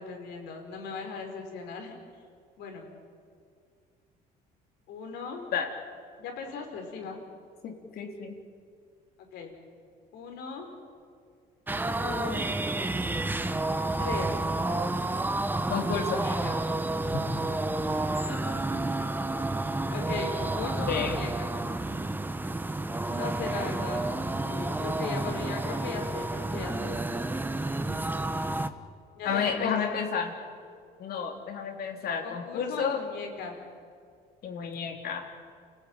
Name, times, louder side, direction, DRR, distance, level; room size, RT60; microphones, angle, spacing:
voice 1, 0.0-1.9 2.6-2.9 4.9-5.4 6.2-7.2 9.3-9.5 10.1-10.7 12.0-12.5 14.0-14.4 16.2-16.6 17.8-18.8 19.9-21.5 23.1-24.0 24.4-27.0 29.2-29.8 32.2-33.6, left 5 dB, 85° left, 3 dB, 5.3 m, -38 dB
voice 2, 7.6-8.3 15.7-16.3 20.9-21.2 29.2-30.3 31.0-33.0 34.4-35.2, left 6 dB, 65° left, 3 dB, 3.8 m, -31 dB
sound 1, 11.7-28.7, right 2 dB, 10° right, 1.2 m, -30 dB
29.0 x 16.0 x 9.1 m, 2.2 s
cardioid pair, 110°, 17 cm